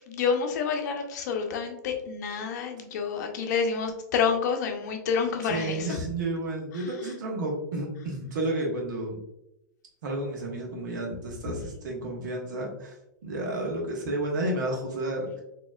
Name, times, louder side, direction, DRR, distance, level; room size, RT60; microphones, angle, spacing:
voice 1, 0.1-6.0 6.7-7.1, left 6 dB, 60° left, 4 dB, 0.7 m, -28 dB
voice 2, 5.4-9.2 10.0-12.9 13.2-15.4, right 1 dB, 70° right, 0 dB, 1.1 m, -31 dB
4.1 x 3.0 x 2.3 m, 0.85 s
hypercardioid pair, 105°, 10 cm